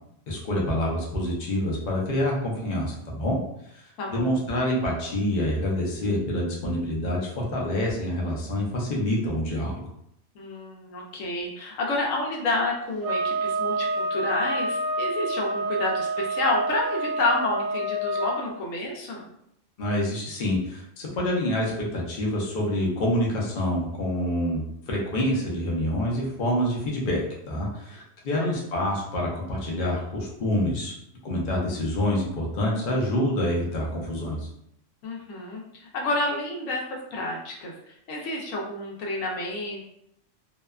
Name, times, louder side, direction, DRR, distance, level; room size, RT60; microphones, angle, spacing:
voice 1, 0.3-3.4 4.1-9.9 19.8-27.2 27.5-30.9 31.2-34.4, left 1 dB, 50° left, -3 dB, 0.6 m, -27 dB
voice 2, 4.0-4.5 10.3-19.3 28.3-28.6 35.0-39.8, left 2 dB, 75° left, -1 dB, 1.0 m, -29 dB
sound 1, 13.0-18.4, right 1 dB, 85° right, 1.0 m, -28 dB
2.7 x 2.2 x 2.3 m, 0.76 s
omnidirectional pair, 1.4 m